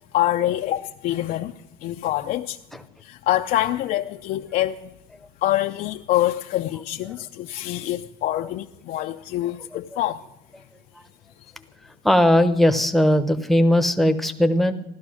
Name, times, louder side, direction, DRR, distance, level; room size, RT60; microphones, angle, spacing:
voice 1, 0.1-1.5 1.8-2.6 3.0-4.9 5.4-10.2, left 14 dB, 55° left, 0.6 m, -25 dB
voice 2, 12.0-14.7, left 1 dB, ahead, 0.9 m, -18 dB
16.0 x 12.0 x 6.2 m
cardioid pair, 155°, 18 cm